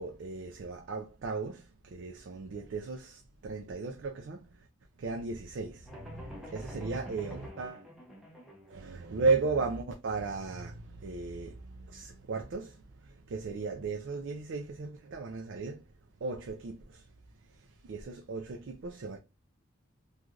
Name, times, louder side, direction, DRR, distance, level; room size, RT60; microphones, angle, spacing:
voice 1, 0.0-4.7 5.0-7.9 8.7-19.2, right 4 dB, 60° right, 0.3 m, -36 dB
sound 1, 5.9-8.8, equal, ahead, 0.6 m, -47 dB
3.1 x 2.4 x 2.4 m
head